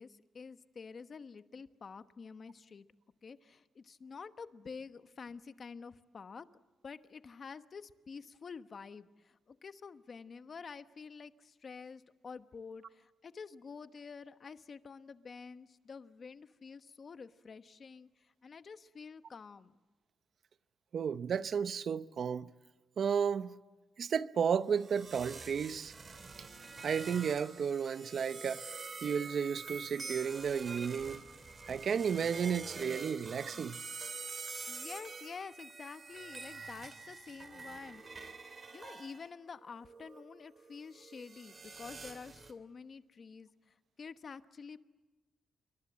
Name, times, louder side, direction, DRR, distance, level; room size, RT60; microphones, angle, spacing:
voice 1, 0.0-2.9 3.2-6.5 6.8-19.8 34.7-38.3 38.7-44.8, left 5 dB, 45° left, 1.1 m, -49 dB
voice 2, 20.9-22.5 23.0-23.6 24.0-25.9 26.8-28.7 29.0-31.2 31.7-33.8, right 7 dB, 60° right, 0.8 m, -33 dB
sound 1, 24.8-39.2 39.8-42.5, right 4 dB, 35° right, 2.8 m, -46 dB
28.0 x 24.5 x 7.5 m
cardioid pair, 110°, 0 cm